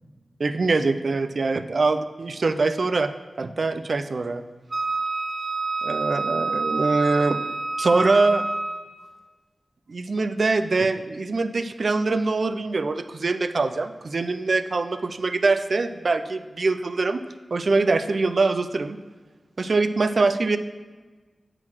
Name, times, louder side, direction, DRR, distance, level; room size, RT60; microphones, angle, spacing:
voice 1, 0.4-3.1 3.4-4.4 5.8-7.4 7.8-8.5 9.9-17.2 17.5-19.0 19.6-20.6, right 3 dB, 65° right, 10 dB, 0.4 m, -23 dB
Wind instrument woodwind instrument, 4.7-8.9, right 3 dB, 35° right, 0.8 m, -27 dB
8.9 x 3.9 x 6.1 m, 1.3 s
wide cardioid pair, 65°, 0 cm